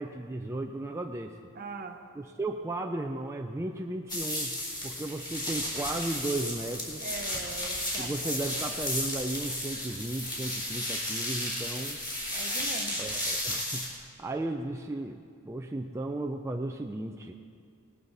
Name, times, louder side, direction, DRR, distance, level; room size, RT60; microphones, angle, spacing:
voice 1, 0.0-1.4 2.2-4.6 4.8-7.1 8.0-12.0 13.0-15.2 15.5-17.3, right 2 dB, 15° right, 3 dB, 0.4 m, -35 dB
voice 2, 1.5-2.0 7.0-8.4 12.3-13.0, right 3 dB, 45° right, 6 dB, 0.9 m, -41 dB
sound 1, 4.1-13.9, left 1 dB, 20° left, 3.4 m, -33 dB
18.5 x 11.5 x 4.0 m, 2.2 s
head